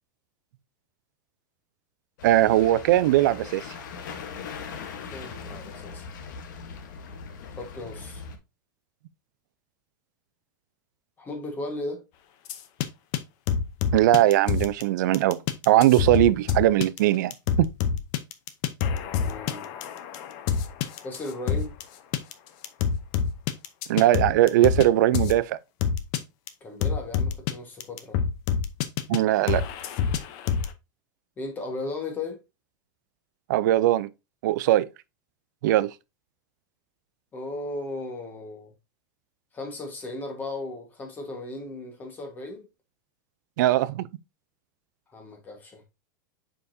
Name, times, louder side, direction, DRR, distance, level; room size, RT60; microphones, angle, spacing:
sound 1, 2.2-8.4, left 5 dB, 75° left, 1.2 m, -40 dB
voice 1, 2.2-3.6 13.9-17.7 23.9-25.6 29.1-29.6 33.5-34.1 34.4-34.9 35.6-35.9 43.6-44.1, right 14 dB, 65° right, 0.4 m, -20 dB
voice 2, 5.0-6.1 7.5-8.2 11.2-12.0 19.2-19.7 21.0-21.7 26.6-28.2 31.4-32.4 37.3-38.7 39.5-42.7 45.1-45.8, left 2 dB, 15° left, 1.4 m, -36 dB
sound 2, 12.5-12.9 13.1-13.2 13.5-14.8 15.1-21.8 22.1-22.3 22.6-24.9 25.1-25.4 25.8-26.2 26.5-26.6 26.8-27.5 27.8-29.2 29.5-30.7, left 7 dB, 40° left, 0.7 m, -26 dB
6.9 x 5.1 x 2.7 m
supercardioid pair, 165°, 10 cm